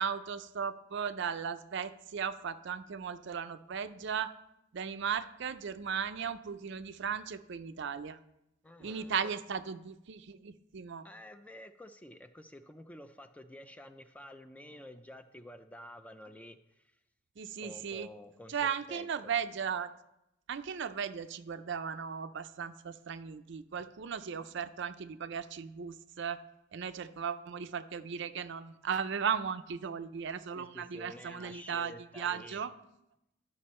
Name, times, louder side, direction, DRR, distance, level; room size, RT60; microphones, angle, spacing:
voice 1, 0.0-4.3 4.7-8.2 8.8-11.0 17.4-18.1 18.5-19.9 20.5-26.4 26.7-32.7, right 7 dB, 60° right, 11 dB, 0.5 m, -36 dB
voice 2, 8.6-9.3 11.0-16.9 17.6-19.1 30.6-32.6, left 1 dB, 5° left, 9 dB, 0.4 m, -50 dB
11.0 x 6.0 x 4.3 m, 0.85 s
head